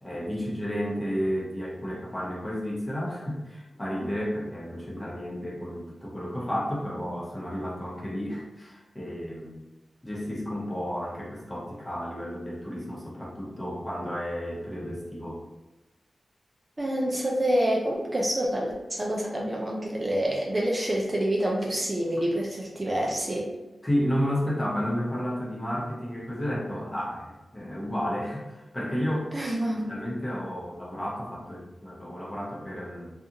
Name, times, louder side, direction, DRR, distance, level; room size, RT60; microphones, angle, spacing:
voice 1, 0.0-9.5 10.0-15.4 23.8-29.3 29.9-33.1, equal, 20° left, -5 dB, 0.9 m, -32 dB
voice 2, 16.8-23.5 29.3-29.9, right 1 dB, 30° right, -2 dB, 0.5 m, -27 dB
2.5 x 2.4 x 2.8 m, 1.0 s
wide cardioid pair, 70°, 0 cm